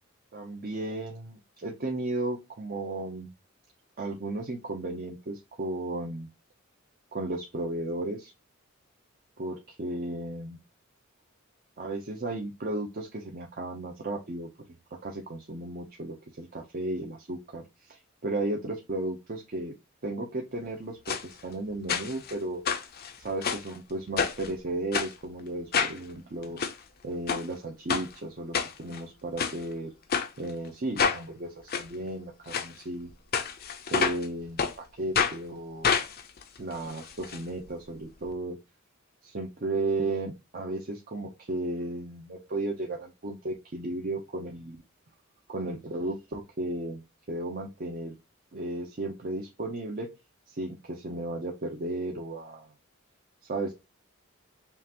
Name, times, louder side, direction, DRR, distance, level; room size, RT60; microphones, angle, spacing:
voice 1, 0.3-3.3 4.0-6.3 7.1-8.3 9.4-10.6 11.8-14.5 15.0-19.7 20.0-21.0 21.2-22.6 23.2-26.8 27.0-29.9 30.4-33.1 33.9-35.9 36.6-38.6 39.2-44.8 45.5-47.0 47.3-48.1 48.5-50.1 50.5-52.7 53.4-53.7, right 2 dB, 45° right, 1 dB, 0.7 m, -34 dB
sound 1, 21.1-21.2 21.9-22.3 22.6-23.7 24.2-24.5 24.9-25.1 25.7-26.0 26.4-26.7 27.3-27.4 27.9-28.1 28.5-29.0 29.4-29.6 30.1-30.3 31.0-31.2 31.7-31.8 32.5-32.7 33.3-34.3 34.6-34.7 35.1-35.4 35.8-37.4 37.7-37.8 38.0-38.1, left 6 dB, 45° left, 0.6 m, -28 dB
5.5 x 2.5 x 2.8 m, 0.24 s
head